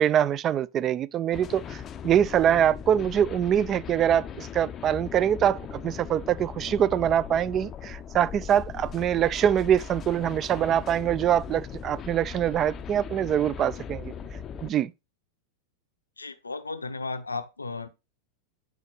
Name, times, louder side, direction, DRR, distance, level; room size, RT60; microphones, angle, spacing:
voice 1, 0.0-14.1 14.6-14.9, right 10 dB, 30° right, 0.3 m, -24 dB
sound 1, 1.3-14.7, left 7 dB, 25° left, 0.5 m, -39 dB
voice 2, 16.2-17.9, left 3 dB, 80° left, 0.7 m, -34 dB
8.1 x 4.3 x 3.9 m
figure-of-eight pair, 90°, 0 cm